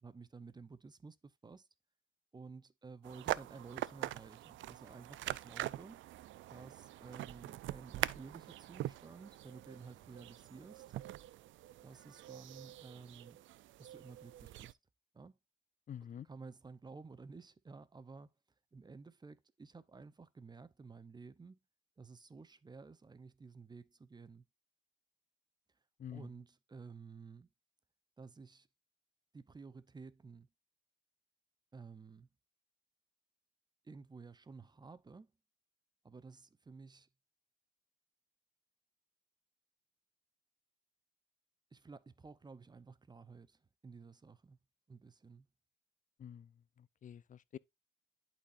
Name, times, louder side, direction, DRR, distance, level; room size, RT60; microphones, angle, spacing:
voice 1, 0.0-1.7 2.3-6.0 6.5-11.0 11.8-13.4 13.8-14.8 15.1-15.3 16.0-18.3 18.7-21.6 22.0-24.4 26.1-27.5 28.2-28.7 29.3-30.5 31.7-32.3 33.8-35.3 36.0-37.1 41.7-44.6 44.9-45.5, right 4 dB, 20° right, 0.6 m, -53 dB
sound 1, 3.0-14.7, right 15 dB, 75° right, 0.4 m, -44 dB
voice 2, 15.9-16.3 26.0-26.3 46.2-46.5 47.0-47.6, left 9 dB, 40° left, 0.5 m, -47 dB
11.5 x 4.3 x 2.5 m
cardioid pair, 90°, 20 cm